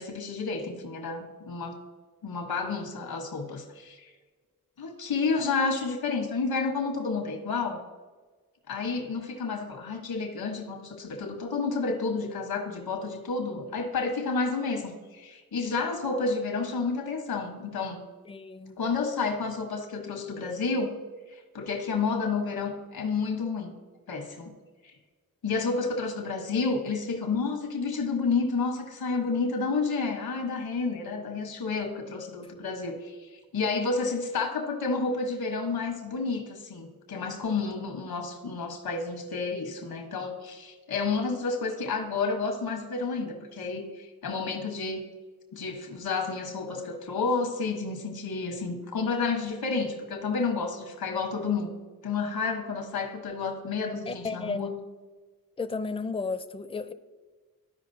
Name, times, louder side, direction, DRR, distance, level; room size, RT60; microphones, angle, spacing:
voice 1, 0.0-1.8 2.2-4.1 4.8-7.8 8.7-18.0 18.8-20.9 21.3-23.7 24.1-24.5 24.8-24.9 25.4-45.0 45.5-51.7 52.0-54.8, left 4 dB, 85° left, 1.3 m, -30 dB
voice 2, 18.3-18.8 54.1-54.8 55.6-56.9, left 4 dB, 15° left, 0.5 m, -33 dB
13.0 x 5.1 x 2.7 m
cardioid pair, 50°, 36 cm